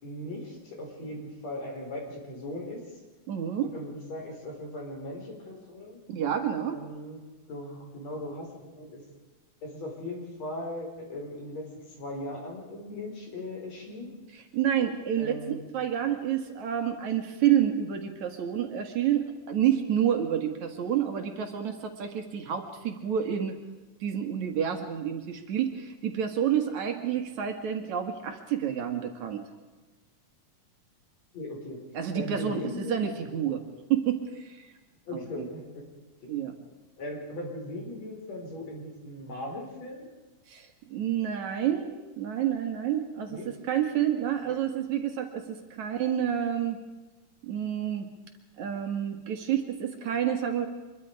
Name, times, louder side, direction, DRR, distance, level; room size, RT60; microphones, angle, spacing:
voice 1, 0.0-2.8 3.6-6.0 6.6-7.2 7.5-9.0 9.6-11.7 12.0-14.1 15.2-15.7 31.3-31.8 32.1-33.1 35.1-35.8 36.2-36.6 37.0-40.1 43.3-43.5 44.4-44.6, left 1 dB, 55° left, 0 dB, 5.9 m, -38 dB
voice 2, 3.3-3.7 6.1-6.8 14.5-15.4 15.7-23.5 24.0-29.4 31.9-33.6 33.9-34.2 34.6-34.7 35.1-35.2 36.3-36.5 40.5-41.9 42.2-43.4 43.7-46.8 47.4-48.1 48.6-50.7, right 9 dB, 65° right, 5 dB, 3.0 m, -29 dB
25.0 x 22.5 x 4.9 m, 1.2 s
omnidirectional pair, 3.6 m